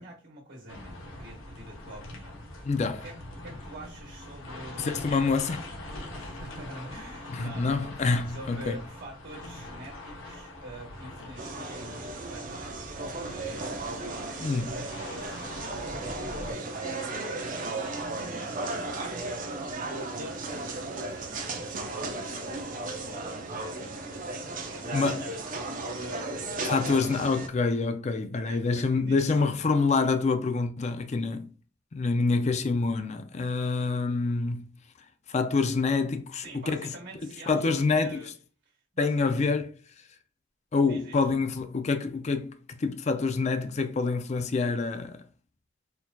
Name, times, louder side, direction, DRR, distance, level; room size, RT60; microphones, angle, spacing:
voice 1, 0.0-2.7 3.0-5.2 6.1-7.9 8.3-19.6 19.9-20.0 20.3-24.0 24.5-25.7 26.8-27.0 28.5-29.7 36.4-38.3 38.6-39.4 40.9-41.3, right 1 dB, 70° right, 1.5 m, -47 dB
sound 1, 0.7-16.5, left 1 dB, 90° left, 1.0 m, -43 dB
voice 2, 2.6-3.0 4.8-5.6 7.3-8.8 14.4-14.8 24.9-25.3 26.6-31.5 31.9-34.7 35.3-36.9 37.5-38.3 39.0-39.6 40.7-45.2, left 4 dB, 35° left, 0.4 m, -27 dB
sound 2, 11.4-27.5, right 2 dB, 45° right, 0.6 m, -35 dB
4.3 x 2.7 x 2.2 m
head